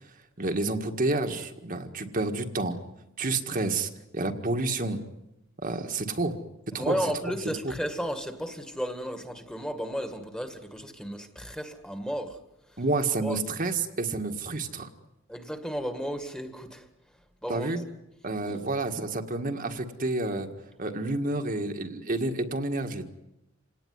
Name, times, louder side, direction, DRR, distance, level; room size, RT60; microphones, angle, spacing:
voice 1, 0.4-2.8 3.2-5.0 5.6-6.4 6.7-7.1 7.6-7.7 12.8-14.9 17.5-17.8 18.2-20.5 20.8-23.1, right 2 dB, 45° right, 5 dB, 1.8 m, -29 dB
voice 2, 6.7-12.4 13.2-13.4 15.3-16.9 17.4-17.7, equal, 5° left, 7 dB, 1.9 m, -33 dB
27.5 x 18.5 x 9.6 m, 0.91 s
head